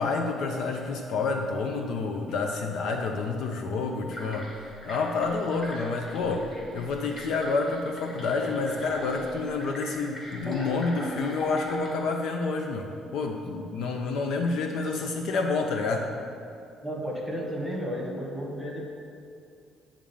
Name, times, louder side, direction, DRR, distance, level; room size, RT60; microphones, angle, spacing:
voice 1, 0.0-16.1, left 3 dB, 70° left, 3 dB, 0.6 m, -29 dB
sound 1, 4.1-11.9, left 1 dB, 25° left, 1.6 m, -41 dB
voice 2, 16.8-18.8, equal, 10° left, -3 dB, 1.5 m, -33 dB
8.7 x 3.7 x 7.0 m, 2.5 s
cardioid pair, 155°, 0 cm